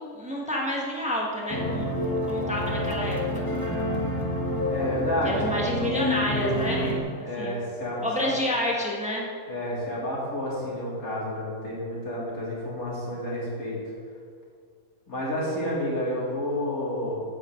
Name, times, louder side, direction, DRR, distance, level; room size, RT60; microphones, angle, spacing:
voice 1, 0.0-3.4 5.2-7.6 8.0-9.2, left 1 dB, 5° right, -3 dB, 1.6 m, -29 dB
sound 1, 1.5-7.0, left 1 dB, 15° left, 1.4 m, -28 dB
voice 2, 4.7-5.7 7.2-8.3 9.5-13.8 15.1-17.2, left 1 dB, 80° left, -6 dB, 3.8 m, -30 dB
15.0 x 9.7 x 3.9 m, 2.1 s
omnidirectional pair, 1.5 m